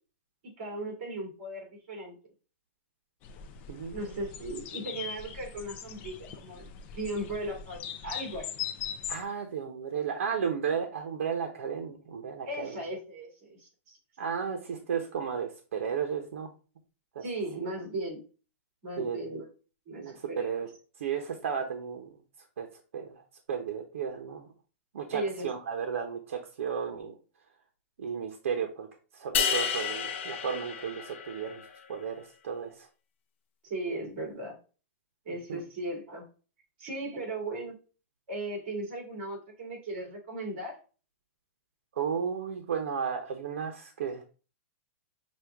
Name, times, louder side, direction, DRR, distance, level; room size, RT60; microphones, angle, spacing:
voice 1, 0.4-2.2 3.9-8.5 12.5-14.0 17.2-18.2 18.8-19.5 19.9-20.5 25.1-25.5 33.6-34.6 35.2-36.3 36.8-37.7 38.3-40.8, right 1 dB, 40° right, 0 dB, 2.3 m, -37 dB
sound 1, 3.2-9.2, left 8 dB, 20° left, 0.4 m, -40 dB
voice 2, 3.7-4.2 9.1-12.8 14.2-16.5 17.1-17.2 17.5-17.6 19.0-19.4 19.9-20.7 21.0-22.2 22.6-22.7 22.9-23.2 23.5-24.5 24.9-27.1 28.0-28.9 29.1-31.6 31.9-32.9 35.5-35.6 41.9-44.2, right 7 dB, 70° right, 4 dB, 0.8 m, -34 dB
sound 2, 29.3-31.6, left 7 dB, 60° left, 0.6 m, -31 dB
6.2 x 2.3 x 3.4 m, 0.35 s
supercardioid pair, 175°, 7 cm